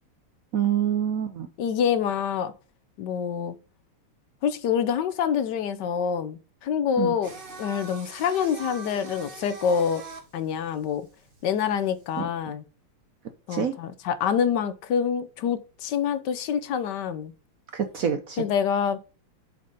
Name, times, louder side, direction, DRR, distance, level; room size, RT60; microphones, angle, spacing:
voice 1, 0.5-1.5 7.0-7.1 12.2-12.3 13.5-13.7 17.7-18.4, right 8 dB, 70° right, 0.8 m, -26 dB
voice 2, 1.6-2.5 3.0-3.5 4.4-7.3 7.6-10.0 10.3-11.1 11.4-12.6 13.5-17.3 18.4-19.0, left 7 dB, 65° left, 1.1 m, -26 dB
Singing, 7.2-12.2, right 2 dB, 35° right, 1.0 m, -42 dB
7.4 x 4.5 x 5.2 m
omnidirectional pair, 2.4 m